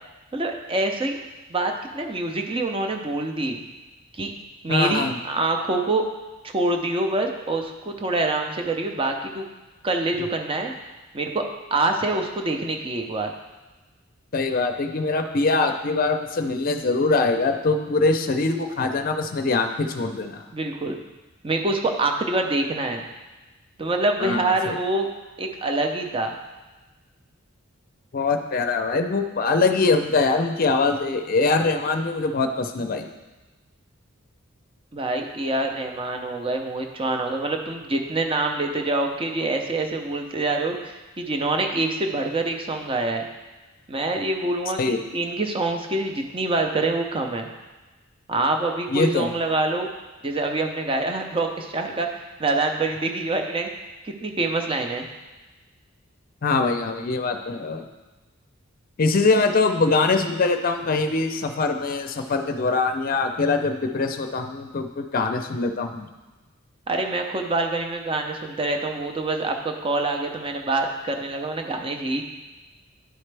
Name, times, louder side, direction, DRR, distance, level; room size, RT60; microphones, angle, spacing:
voice 1, 0.3-1.2 1.5-3.6 4.1-4.3 4.6-6.0 6.4-9.5 9.8-10.7 11.1-11.4 11.7-13.3 20.5-21.0 21.4-23.0 23.8-25.1 25.4-26.4 34.9-43.2 43.9-47.5 48.3-49.9 50.2-53.7 54.0-55.0 66.9-72.2, right 2 dB, 25° right, 3 dB, 0.6 m, -25 dB
voice 2, 4.7-5.2 14.3-20.4 24.2-24.8 28.1-33.1 44.8-45.0 48.9-49.3 56.4-57.8 59.0-66.1, left 3 dB, 45° left, 6 dB, 0.5 m, -23 dB
10.5 x 4.2 x 3.3 m, 1.2 s
head